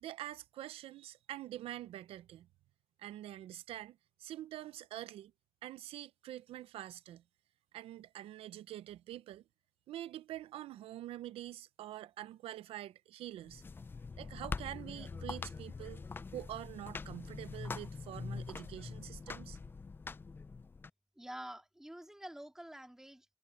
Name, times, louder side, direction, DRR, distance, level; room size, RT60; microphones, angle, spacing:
voice 1, 0.0-2.5 3.0-5.3 5.6-7.2 7.7-9.4 9.9-13.6 14.2-16.0 16.3-19.6, right 13 dB, 90° right, 0.6 m, -46 dB
sound 1, 13.4-20.9, left 4 dB, 20° left, 0.4 m, -44 dB
voice 2, 21.2-23.4, right 1 dB, 5° right, 2.8 m, -48 dB
cardioid pair, 120°, 10 cm